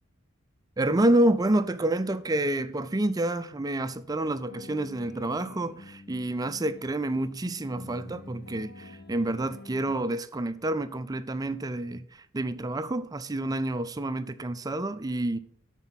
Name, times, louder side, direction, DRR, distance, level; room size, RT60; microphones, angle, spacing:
voice 1, 0.8-15.4, right 1 dB, 15° right, 0.4 m, -28 dB
sound 1, 4.5-9.9, left 2 dB, 50° left, 0.9 m, -47 dB
11.5 x 4.5 x 5.7 m
head